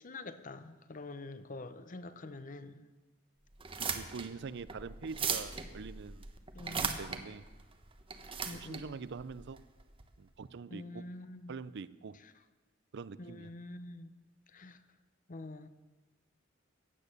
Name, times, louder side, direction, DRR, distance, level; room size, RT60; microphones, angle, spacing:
voice 1, 0.0-2.8 6.5-7.0 8.4-8.9 10.7-11.5 13.2-14.1 14.5-14.8 15.3-15.7, left 2 dB, 40° left, 11 dB, 0.8 m, -46 dB
sound 1, 3.5-10.0, right 6 dB, 30° right, 0.9 m, -39 dB
voice 2, 3.9-6.3 6.8-7.4 8.5-9.6 10.2-11.0 11.5-12.2 12.9-13.5, right 5 dB, 60° right, 17 dB, 0.5 m, -44 dB
15.0 x 8.7 x 6.8 m, 1.2 s
head